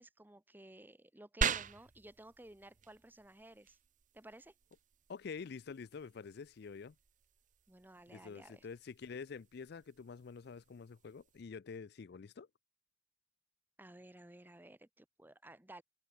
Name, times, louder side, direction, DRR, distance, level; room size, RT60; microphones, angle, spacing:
voice 1, 0.0-3.8 4.1-4.5 7.7-8.7 13.8-15.8, right 1 dB, 10° right, 1.0 m, -55 dB
sound 1, 1.4-11.4, right 6 dB, 45° right, 0.9 m, -44 dB
voice 2, 5.1-6.9 8.1-12.5, left 5 dB, 60° left, 0.4 m, -47 dB
head